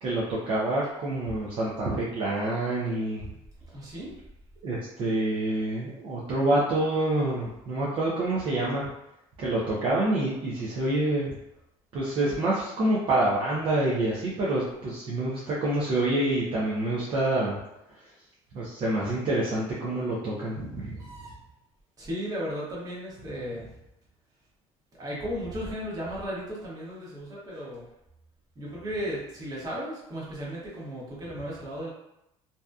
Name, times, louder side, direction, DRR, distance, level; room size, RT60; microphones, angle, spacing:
voice 1, 0.0-3.2 4.6-8.9 9.4-11.4 11.9-17.6 18.5-21.0, right 1 dB, 50° right, -6 dB, 0.6 m, -27 dB
voice 2, 3.7-4.1 21.0-21.3 22.0-23.7 25.0-27.8 28.5-31.9, equal, 30° right, -6 dB, 1.1 m, -35 dB
2.7 x 2.2 x 2.3 m, 0.84 s
cardioid pair, 115°, 12 cm